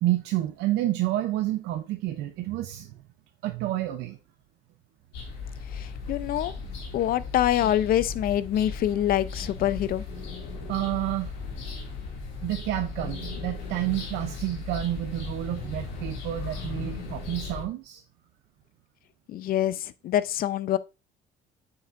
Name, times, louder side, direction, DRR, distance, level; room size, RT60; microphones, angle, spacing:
voice 1, 0.0-3.0 3.4-4.2 10.7-11.3 12.4-18.0, right 14 dB, 80° right, 0.6 m, -29 dB
sound 1, 5.1-17.6, left 4 dB, 90° left, 2.3 m, -37 dB
voice 2, 5.7-6.5 6.9-10.1 19.3-20.8, left 12 dB, 60° left, 0.6 m, -25 dB
7.7 x 5.8 x 2.5 m
cardioid pair, 110°, 17 cm